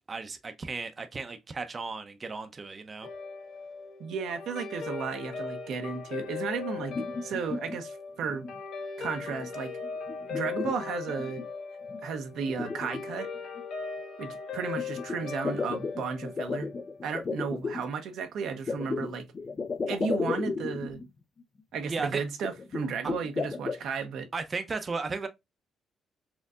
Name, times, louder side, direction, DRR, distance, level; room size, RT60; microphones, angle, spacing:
voice 1, 0.0-3.1 21.9-22.2 23.0-23.1 24.3-25.3, right 4 dB, 35° right, 0.5 m, -35 dB
Guitar, 3.0-17.6, left 5 dB, 70° left, 1.4 m, -39 dB
voice 2, 4.0-6.9 7.2-8.5 9.0-9.7 10.3-11.4 12.0-13.3 14.2-16.7 17.0-19.3 19.9-21.0 21.7-24.3, right 6 dB, 75° right, 0.7 m, -34 dB
sound 1, 6.6-7.8 8.2-8.6 9.0-9.5 9.8-11.5 11.9-12.0 12.4-13.6 14.8-17.8 18.7-21.1 21.4-21.5 21.7-21.8 22.4-23.8, left 4 dB, 40° left, 0.4 m, -34 dB
4.4 x 2.6 x 2.3 m
cardioid pair, 90°, 0 cm